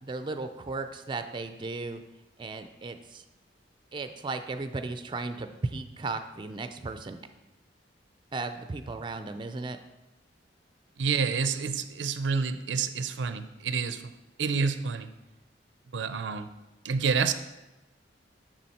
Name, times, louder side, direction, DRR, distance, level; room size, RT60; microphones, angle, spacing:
voice 1, 0.0-2.0 2.4-3.2 3.9-7.2 8.3-9.8, right 3 dB, 25° right, 9 dB, 0.4 m, -35 dB
voice 2, 11.0-14.0 14.4-15.1 15.9-16.5 16.8-17.3, right 5 dB, 90° right, 10 dB, 0.5 m, -28 dB
7.5 x 6.2 x 4.2 m, 1.1 s
head